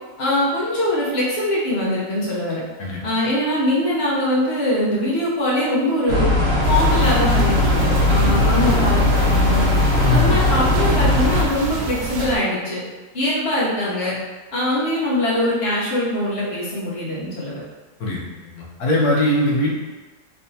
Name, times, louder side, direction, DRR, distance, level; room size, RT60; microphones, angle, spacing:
voice 1, 0.2-2.6 3.0-6.3 6.7-9.7 10.1-12.8 13.1-14.1 14.5-17.6, left 1 dB, 45° left, -6 dB, 1.0 m, -22 dB
sound 1, 6.1-11.4, left 1 dB, 45° right, 0.8 m, -18 dB
sound 2, 6.6-12.4, right 3 dB, 85° right, 1.2 m, -28 dB
voice 2, 10.0-10.4 18.0-19.7, left 1 dB, 70° left, -3 dB, 1.2 m, -21 dB
3.4 x 3.3 x 2.7 m, 1.3 s
omnidirectional pair, 1.8 m